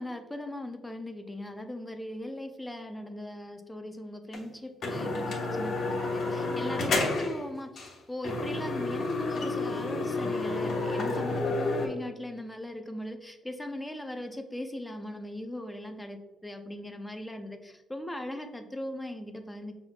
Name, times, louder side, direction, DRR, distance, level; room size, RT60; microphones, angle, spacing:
voice 1, 0.0-19.7, left 1 dB, 10° left, 6 dB, 0.6 m, -39 dB
sound 1, 4.3-4.4 4.8-7.4 7.8-7.9 8.2-11.9, left 2 dB, 60° left, 1.1 m, -30 dB
5.5 x 3.5 x 2.3 m, 1.1 s
cardioid pair, 90°, 0 cm